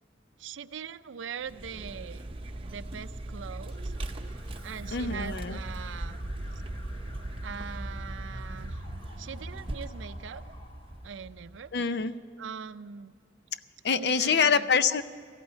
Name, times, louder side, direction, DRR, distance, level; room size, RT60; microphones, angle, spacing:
voice 1, 0.4-2.2 2.6-3.9 4.6-6.2 7.4-8.8 9.2-10.4 11.0-11.7 12.4-13.1 13.9-14.7, right 7 dB, 90° right, 14 dB, 0.5 m, -41 dB
Vehicle, 1.4-11.8, right 1 dB, 30° right, 0.8 m, -39 dB
Alarm, 3.7-11.6, left 2 dB, 25° left, 1.4 m, -55 dB
voice 2, 4.9-5.6 11.7-12.1 13.8-15.0, left 6 dB, 60° left, 13 dB, 0.6 m, -25 dB
14.5 x 8.7 x 9.7 m, 2.2 s
head